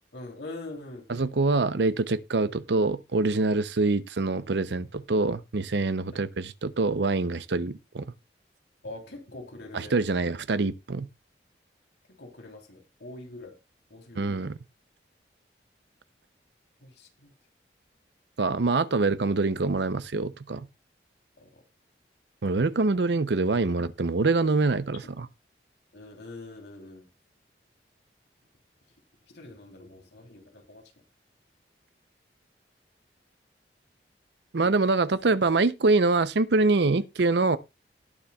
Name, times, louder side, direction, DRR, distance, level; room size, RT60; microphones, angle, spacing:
voice 1, 0.1-1.1 8.8-9.9 12.2-13.5 13.9-14.4 16.8-17.3 21.4-21.5 25.9-27.1 29.3-30.8, left 2 dB, 75° left, 3.4 m, -43 dB
voice 2, 1.1-8.1 9.7-11.1 14.2-14.6 18.4-20.7 22.4-25.3 34.5-37.6, right 3 dB, 75° right, 0.7 m, -25 dB
19.5 x 7.0 x 2.4 m
head